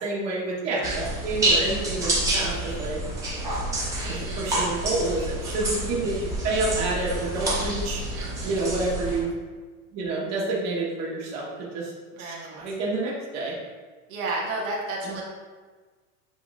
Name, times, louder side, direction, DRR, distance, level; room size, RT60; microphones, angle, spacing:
voice 1, 0.0-3.0 4.1-8.0 8.4-9.3 9.9-11.9 12.2-13.5 15.0-15.1, right 2 dB, 40° right, -5 dB, 1.2 m, -29 dB
sound 1, 0.8-9.2, right 1 dB, 10° right, 0.3 m, -28 dB
voice 2, 4.0-4.5 8.1-8.6 12.1-12.6 14.1-15.2, right 2 dB, 80° right, -3 dB, 1.2 m, -32 dB
7.4 x 2.9 x 2.3 m, 1.4 s
supercardioid pair, 150°, 41 cm